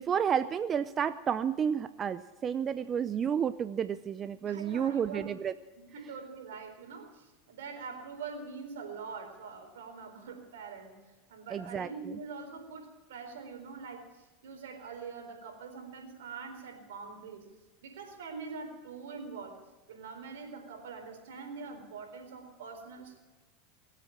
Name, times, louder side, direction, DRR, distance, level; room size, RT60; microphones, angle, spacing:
voice 1, 0.0-5.5 11.5-12.2, right 8 dB, 30° right, 13 dB, 0.6 m, -31 dB
voice 2, 4.4-5.3 5.8-10.9 11.3-17.5 17.8-19.6 19.9-23.2, right 5 dB, 85° right, 4 dB, 4.3 m, -44 dB
23.0 x 8.4 x 7.5 m, 1.2 s
hypercardioid pair, 105°, 0 cm